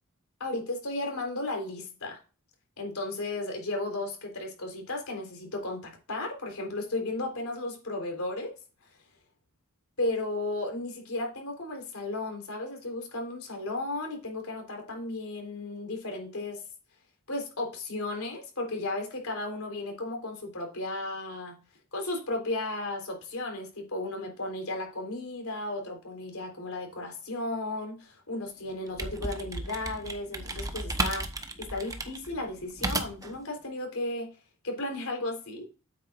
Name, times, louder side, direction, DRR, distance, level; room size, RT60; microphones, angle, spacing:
voice 1, 0.4-2.2 2.8-8.5 10.0-16.6 17.3-21.6 21.9-31.3 31.6-34.3 34.6-35.7, left 2 dB, 75° left, 2 dB, 3.8 m, -34 dB
sound 1, 28.7-33.4, right 2 dB, 15° right, 1.0 m, -34 dB
9.0 x 8.6 x 2.5 m, 0.32 s
head